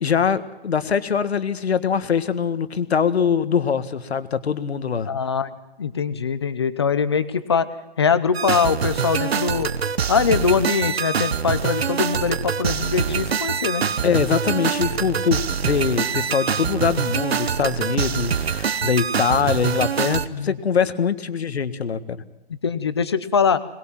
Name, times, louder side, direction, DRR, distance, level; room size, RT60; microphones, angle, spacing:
voice 1, 0.0-5.1 14.0-22.2, left 6 dB, 75° left, 13 dB, 1.7 m, -23 dB
voice 2, 5.1-5.5 5.8-7.7 8.0-9.7 10.1-13.9 20.3-20.5 22.6-23.6, left 6 dB, 25° left, 14 dB, 0.8 m, -22 dB
sound 1, 8.3-20.3, right 7 dB, 70° right, 1.2 m, -24 dB
22.0 x 20.0 x 7.5 m, 1.0 s
hypercardioid pair, 180°, 32 cm